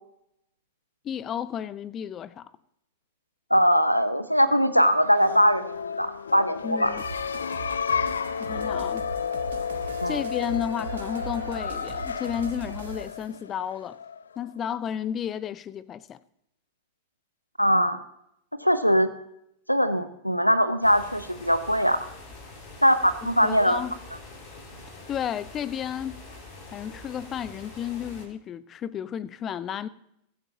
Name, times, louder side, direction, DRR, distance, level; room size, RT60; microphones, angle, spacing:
voice 1, 1.0-2.5 6.6-7.0 8.4-9.1 10.1-14.0 14.4-16.2 23.4-23.9 25.1-26.2 26.7-29.9, left 9 dB, 25° left, 0.6 m, -32 dB
voice 2, 3.5-6.9 10.0-10.2 17.6-18.0 18.6-19.1 19.7-22.0 22.8-23.8, equal, 90° left, 0.9 m, -21 dB
sound 1, 4.9-14.5, left 7 dB, 70° left, 0.4 m, -32 dB
sound 2, 7.0-13.3, right 6 dB, 65° right, 1.4 m, -40 dB
sound 3, 20.8-28.2, left 2 dB, 45° left, 4.2 m, -45 dB
22.5 x 11.0 x 2.8 m
figure-of-eight pair, 90°, 0 cm